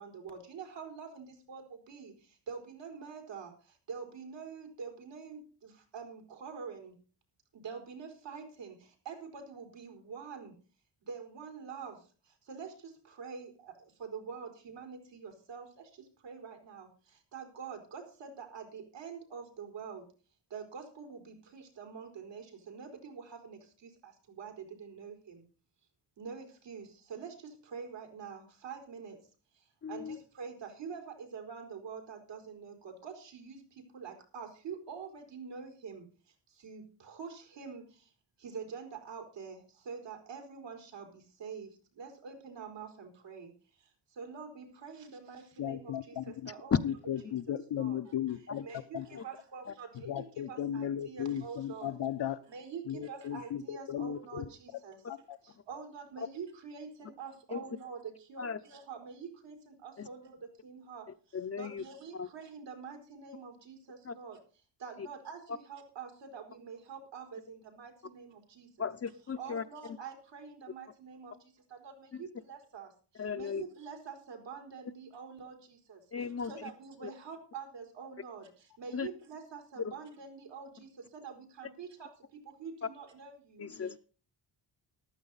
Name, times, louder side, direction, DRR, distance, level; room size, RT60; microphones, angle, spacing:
voice 1, 0.0-1.6 1.9-2.1 2.5-3.5 3.9-5.4 5.9-6.9 7.6-8.7 9.1-10.5 11.1-11.9 12.5-12.7 13.2-13.5 14.0-15.6 16.2-16.9 17.3-20.0 20.5-23.6 24.4-24.5 24.8-25.1 26.2-26.8 27.1-27.3 27.7-29.1 29.9-30.0 30.4-32.7 33.0-33.6 33.9-36.0 36.6-36.8 37.1-37.8 38.4-39.6 39.9-41.1 41.4-41.7 42.0-43.5 44.2-46.1 46.5-46.8 47.8-48.0 48.6-51.9 52.5-54.4 54.8-55.0 55.7-58.0 58.3-59.5 59.8-60.3 60.6-61.0 61.6-64.4 64.8-65.4 65.7-68.9 69.4-71.3 71.8-71.9 72.2-72.9 73.3-75.5 75.9-76.0 76.5-78.4 78.8-80.9 81.1-82.1 82.6-83.3, right 6 dB, 75° right, 5 dB, 4.3 m, -45 dB
voice 2, 29.8-30.2 46.7-46.8 49.2-49.3 49.7-49.8 57.5-57.6 58.4-58.6 60.0-60.1 61.3-61.8 62.1-62.3 64.0-64.1 65.0-65.1 68.8-69.6 72.1-72.2 73.2-73.6 76.1-76.5 77.0-77.1 78.9-79.1 79.8-79.9 83.6-84.0, left 6 dB, 35° left, 8 dB, 0.7 m, -35 dB
voice 3, 45.6-46.5 46.8-48.6 48.9-49.2 50.0-52.4 52.9-54.4 55.1-55.4, left 10 dB, 70° left, 10 dB, 0.8 m, -36 dB
14.5 x 12.0 x 4.1 m, 0.37 s
cardioid pair, 115°, 43 cm